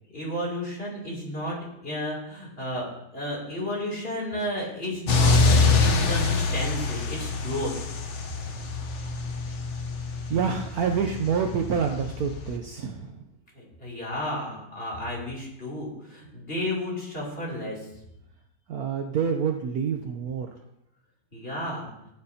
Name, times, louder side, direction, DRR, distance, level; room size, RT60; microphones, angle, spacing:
voice 1, 0.1-7.7 13.5-17.9 21.3-21.9, left 1 dB, 30° left, -3 dB, 3.2 m, -32 dB
sound 1, 5.1-12.6, left 4 dB, 50° left, 1.0 m, -25 dB
voice 2, 10.3-13.2 18.7-20.5, right 6 dB, 65° right, 4 dB, 1.0 m, -27 dB
15.5 x 8.7 x 2.8 m, 0.81 s
omnidirectional pair, 1.9 m